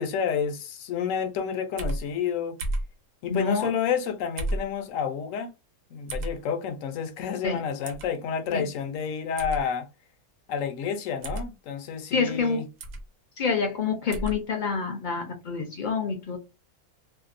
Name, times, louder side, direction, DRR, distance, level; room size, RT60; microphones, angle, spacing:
voice 1, 0.0-2.6 3.2-5.5 5.9-9.9 10.5-12.7, left 7 dB, 75° left, 0.9 m, -29 dB
sound 1, 1.8-2.0 2.6-2.9 4.4-4.7 6.1-6.3 7.8-8.1 9.4-9.6 11.2-11.5 12.8-13.0 14.1-14.4, right 1 dB, 75° right, 1.0 m, -31 dB
voice 2, 3.3-3.7 7.4-7.6 8.5-8.7 12.1-12.6 13.4-16.4, left 5 dB, 55° left, 0.5 m, -27 dB
2.7 x 2.1 x 2.4 m
omnidirectional pair, 1.4 m